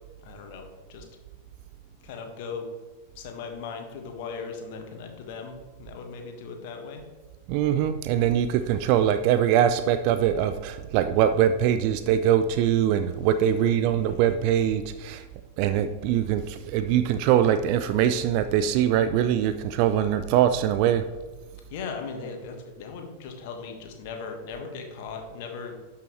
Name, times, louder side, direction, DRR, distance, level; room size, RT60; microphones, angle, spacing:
voice 1, 0.2-1.1 2.0-2.7 3.1-7.0 13.5-14.2 21.7-26.0, left 5 dB, 50° left, 4 dB, 1.6 m, -38 dB
voice 2, 7.5-15.2 15.6-21.1, right 10 dB, 45° right, 11 dB, 0.4 m, -23 dB
12.0 x 5.7 x 3.2 m, 1.3 s
figure-of-eight pair, 90°, 0 cm